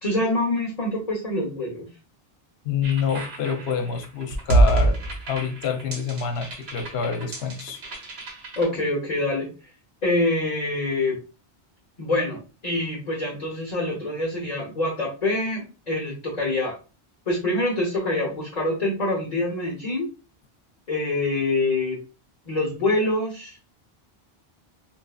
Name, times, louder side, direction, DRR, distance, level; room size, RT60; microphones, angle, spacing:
voice 1, 0.0-1.9 8.6-9.5 10.0-11.2 12.0-16.8 17.3-20.1 20.9-22.0 22.5-23.6, left 2 dB, 45° left, -4 dB, 1.0 m, -25 dB
voice 2, 2.6-5.0 5.3-7.8, left 6 dB, 80° left, 6 dB, 0.9 m, -27 dB
sound 1, 2.8-8.6, right 2 dB, 75° right, 1.2 m, -25 dB
4.3 x 2.7 x 2.3 m, 0.33 s
omnidirectional pair, 1.1 m